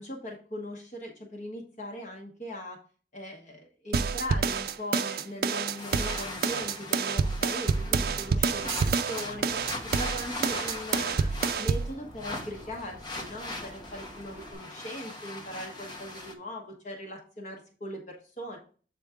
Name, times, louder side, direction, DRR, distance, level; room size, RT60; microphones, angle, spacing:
voice 1, 0.0-2.8 3.1-11.3 11.6-18.6, equal, 40° left, 0 dB, 1.2 m, -40 dB
sound 1, 3.9-11.9, right 5 dB, 55° right, 0.4 m, -28 dB
sound 2, 5.8-16.3, left 2 dB, 25° left, 1.1 m, -40 dB
sound 3, 7.9-14.5, equal, 20° right, 3.1 m, -51 dB
7.7 x 4.3 x 3.6 m, 0.40 s
head